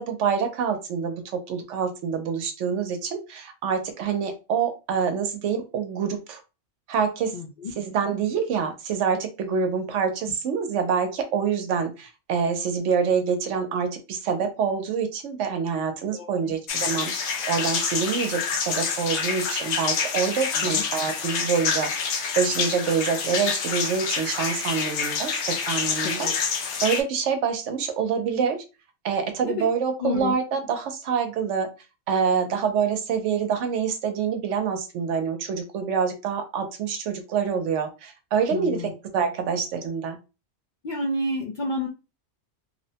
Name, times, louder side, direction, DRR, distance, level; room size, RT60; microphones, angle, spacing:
voice 1, 0.0-6.4 6.9-7.3 7.8-21.9 22.4-26.3 26.8-28.6 29.0-31.7 32.1-38.8 39.1-40.2, right 6 dB, 85° right, 5 dB, 0.9 m, -26 dB
voice 2, 7.3-7.7 16.1-16.5 20.5-20.8 26.0-26.3 29.4-29.7 30.0-30.3 38.5-38.9 40.8-41.9, left 2 dB, 60° left, 1 dB, 0.5 m, -30 dB
sound 1, 16.7-27.0, left 6 dB, 80° left, 0.9 m, -27 dB
2.8 x 2.1 x 2.7 m, 0.29 s
omnidirectional pair, 1.2 m